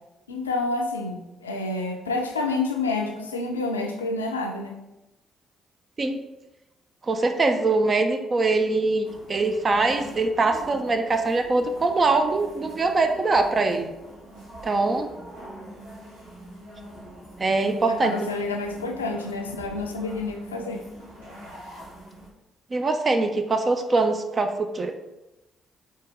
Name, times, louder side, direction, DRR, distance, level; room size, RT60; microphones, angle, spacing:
voice 1, 0.3-4.8 17.9-20.8, left 3 dB, 90° left, 3 dB, 0.4 m, -28 dB
voice 2, 7.0-13.9 14.6-15.1 17.4-18.1 22.7-24.9, right 3 dB, 40° right, 6 dB, 0.5 m, -23 dB
sound 1, 9.0-22.3, equal, 85° right, 1.3 m, -44 dB
4.5 x 3.0 x 3.5 m, 0.98 s
hypercardioid pair, 40°, 0 cm